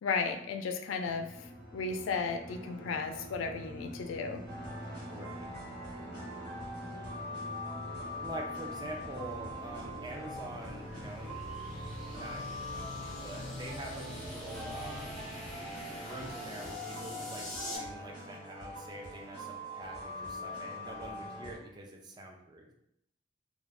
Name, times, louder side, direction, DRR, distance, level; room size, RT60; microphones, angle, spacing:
voice 1, 0.0-4.4, left 4 dB, 90° left, 6 dB, 0.3 m, -34 dB
sound 1, 1.0-17.4, left 1 dB, 75° right, 1.1 m, -46 dB
sound 2, 4.5-21.6, left 1 dB, 55° right, 1.2 m, -43 dB
voice 2, 5.1-5.5 8.2-11.3 12.1-15.4 16.0-22.7, right 1 dB, 20° right, 0 dB, 0.4 m, -45 dB
sound 3, 9.8-17.8, left 1 dB, ahead, 0.8 m, -45 dB
2.4 x 2.1 x 3.2 m, 0.78 s
head